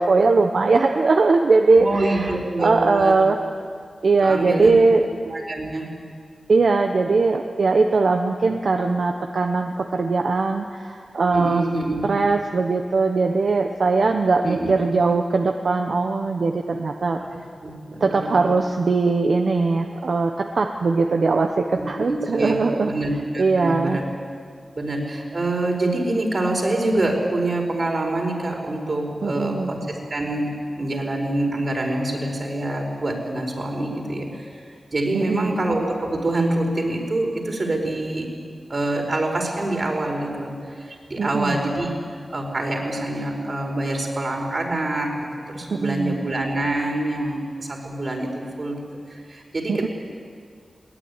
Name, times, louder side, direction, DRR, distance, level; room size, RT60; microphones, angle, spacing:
voice 1, 0.0-2.3 2.6-3.4 4.0-5.1 6.5-11.6 12.0-17.2 18.0-22.9 23.4-24.0 29.2-29.7 35.1-35.6 41.2-41.6 45.7-46.2 49.7-49.9, right 3 dB, 70° right, 4 dB, 1.2 m, -20 dB
voice 2, 1.8-3.2 4.2-4.7 5.3-5.9 11.3-12.1 14.4-14.8 17.2-18.4 21.8-24.0 24.8-34.6 34.9-38.3 38.7-41.9 42.3-45.1 45.5-48.8 49.1-49.9, right 2 dB, 45° right, 1 dB, 4.7 m, -26 dB
21.5 x 18.5 x 9.8 m, 2.1 s
wide cardioid pair, 105°, 0 cm